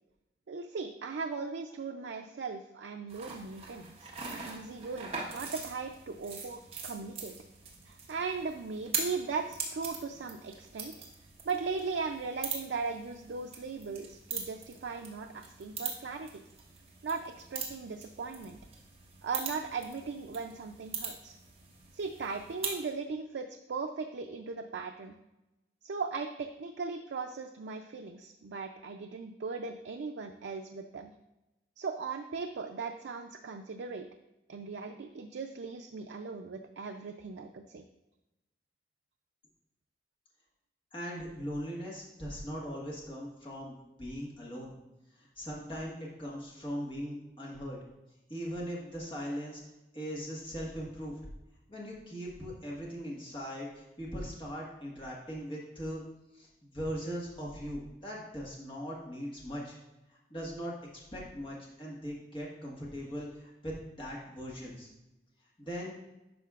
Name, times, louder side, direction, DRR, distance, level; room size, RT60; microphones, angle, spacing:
voice 1, 0.5-4.1 4.5-7.3 7.9-10.9 11.4-16.4 17.0-18.6 19.2-21.3 21.9-25.1 25.8-31.1 31.8-34.1 34.5-37.8, right 4 dB, 75° right, 4 dB, 0.4 m, -38 dB
sound 1, 3.1-22.8, right 5 dB, 35° right, 1.2 m, -42 dB
voice 2, 40.9-44.7 45.2-47.8 48.3-49.6 49.9-51.2 51.7-56.0 56.3-59.8 60.1-64.9 65.6-66.0, equal, 25° left, -4 dB, 1.4 m, -40 dB
10.0 x 5.7 x 2.4 m, 0.98 s
head